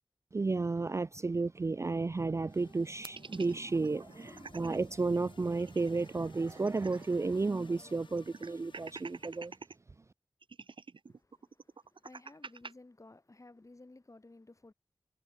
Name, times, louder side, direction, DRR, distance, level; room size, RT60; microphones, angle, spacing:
voice 1, 0.3-9.5, right 3 dB, 35° right, 0.3 m, -32 dB
sound 1, 2.5-9.6, left 4 dB, 70° left, 0.9 m, -58 dB
sound 2, 3.0-4.8 5.1-5.2 5.5-7.3 7.6-7.7 8.2-9.8 10.4-12.7, right 4 dB, 75° right, 1.1 m, -48 dB
voice 2, 11.1-14.7, left 2 dB, 40° left, 7.1 m, -56 dB
wide cardioid pair, 70°, 9 cm